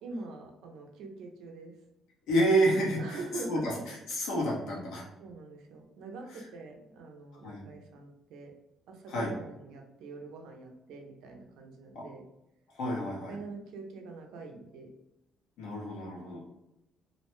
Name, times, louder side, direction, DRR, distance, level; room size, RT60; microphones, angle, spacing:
voice 1, 0.0-1.8 3.0-4.0 5.2-8.5 8.9-12.3 13.3-14.9, right 3 dB, 85° right, 2 dB, 0.5 m, -44 dB
voice 2, 2.3-3.2 3.5-5.0 7.4-7.7 9.1-9.3 11.9-12.1 12.8-13.4 15.6-16.4, right 1 dB, 80° left, -3 dB, 0.9 m, -29 dB
2.6 x 2.1 x 3.0 m, 0.90 s
cardioid pair, 130°, 0 cm